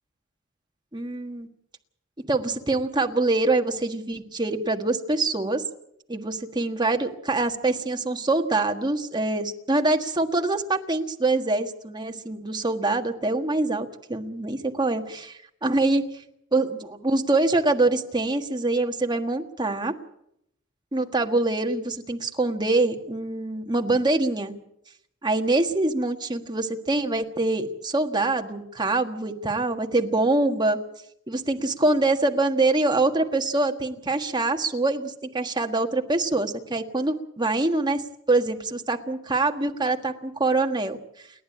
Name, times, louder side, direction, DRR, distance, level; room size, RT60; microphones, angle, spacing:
voice 1, 0.9-1.5 2.3-5.6 6.1-16.0 16.5-20.0 20.9-24.5 25.2-30.8 31.3-38.0 38.3-41.0, right 2 dB, 20° right, 4 dB, 1.5 m, -24 dB
29.0 x 10.5 x 8.7 m, 0.76 s
head